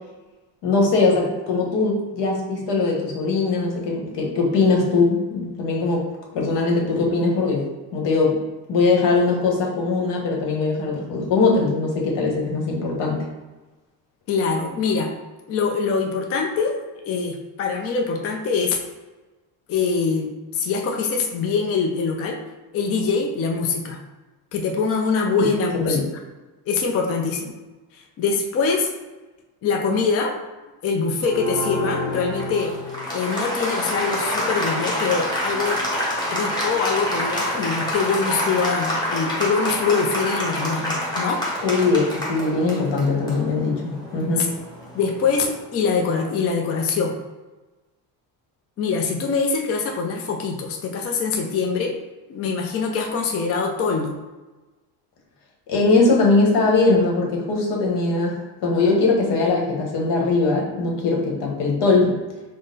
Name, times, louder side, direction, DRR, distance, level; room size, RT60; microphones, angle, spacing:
voice 1, 0.6-6.0 6.3-7.6 7.9-8.4 8.7-13.2 25.4-25.5 25.8-26.0 41.6-44.5 55.7-62.2, left 3 dB, 75° left, -1 dB, 1.2 m, -21 dB
voice 2, 14.3-15.1 15.5-16.8 17.0-18.8 19.7-22.4 22.7-24.0 24.5-26.0 26.7-27.5 28.2-28.9 29.6-30.4 30.8-32.7 33.1-35.8 36.3-41.5 44.4-44.5 44.9-47.1 48.8-51.9 52.3-54.1, left 5 dB, 35° left, 1 dB, 0.4 m, -23 dB
Applause, 31.2-45.6, left 1 dB, 10° left, 0.9 m, -27 dB
3.8 x 2.0 x 3.9 m, 1.2 s
cardioid pair, 125°, 43 cm